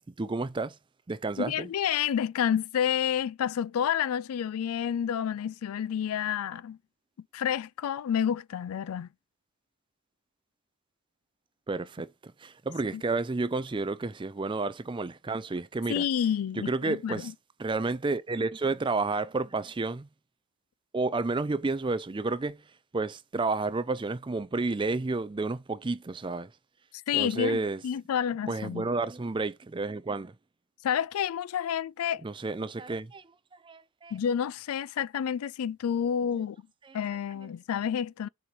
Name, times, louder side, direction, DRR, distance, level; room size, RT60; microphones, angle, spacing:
voice 1, 0.1-0.8 1.1-1.7 11.7-16.0 16.6-17.3 17.6-20.1 20.9-22.6 22.9-26.5 27.1-27.8 28.5-30.3 32.2-33.3 33.6-34.1 36.3-36.4 36.8-37.0, right 3 dB, 20° right, 0.4 m, -31 dB
voice 2, 1.4-6.8 7.3-9.1 15.9-17.3 27.1-28.9 30.8-32.2 34.1-36.6 36.9-38.3, left 8 dB, 85° left, 0.3 m, -29 dB
6.9 x 3.0 x 4.6 m
head